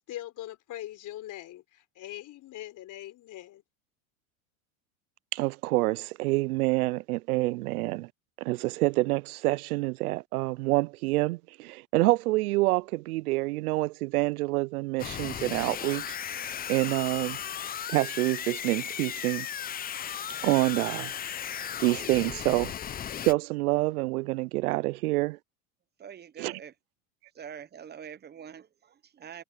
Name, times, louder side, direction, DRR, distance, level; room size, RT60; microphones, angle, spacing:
voice 1, 0.0-3.6, left 14 dB, 45° left, 4.1 m, -42 dB
voice 2, 5.3-8.1 8.4-17.4 17.9-19.5 20.4-21.1 21.4-22.7 23.2-25.4 26.4-26.5, right 20 dB, 85° right, 0.6 m, -27 dB
sound 1, 15.0-23.3, left 9 dB, 20° left, 0.6 m, -36 dB
voice 3, 26.0-26.7 27.3-29.4, right 8 dB, 25° right, 1.0 m, -45 dB
supercardioid pair, 110°, 43 cm